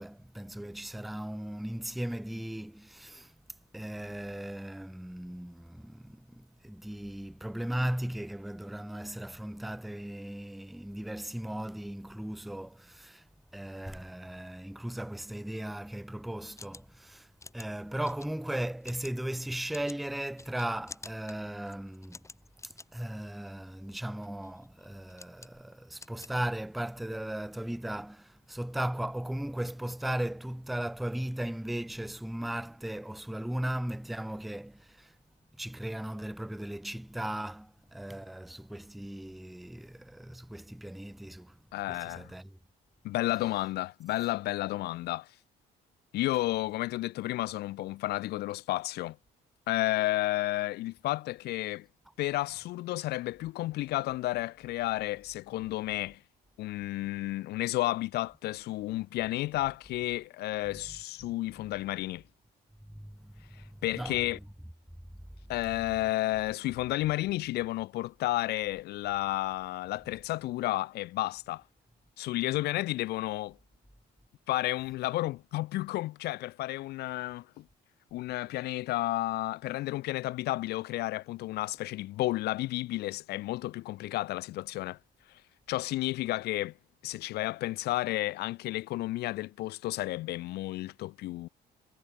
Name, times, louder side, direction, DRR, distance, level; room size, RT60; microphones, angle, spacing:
voice 1, 0.0-3.3 3.7-13.2 13.5-17.3 17.5-22.3 22.6-35.2 35.6-41.6 41.9-42.5 43.2-43.7 46.3-46.4 60.8-61.0 62.9-63.4 63.7-64.7, right 1 dB, ahead, 0.3 m, -37 dB
sound 1, 16.4-27.0, left 3 dB, 15° left, 2.2 m, -52 dB
voice 2, 41.7-42.3 43.0-45.3 46.1-49.2 49.7-51.9 52.2-56.2 56.6-62.2 63.5-64.4 65.5-71.6 72.2-73.6 74.5-77.6 78.1-85.0 85.7-86.7 87.0-91.5, left 17 dB, 75° left, 0.7 m, -32 dB
cardioid pair, 110°, 17 cm